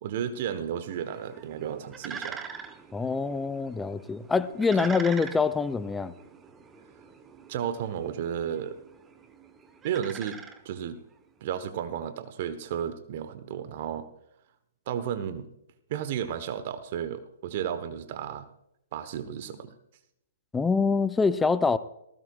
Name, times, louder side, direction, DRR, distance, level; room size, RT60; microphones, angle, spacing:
voice 1, 0.0-2.5 7.5-8.8 9.8-11.0 11.4-14.1 14.9-15.5 15.9-18.5 18.9-19.7, right 9 dB, 45° right, 1.1 m, -33 dB
sound 1, 0.9-11.2, right 6 dB, 15° right, 1.1 m, -44 dB
voice 2, 2.9-6.1 20.5-21.8, left 4 dB, 10° left, 0.6 m, -25 dB
19.0 x 16.0 x 2.4 m
figure-of-eight pair, 125°, 0 cm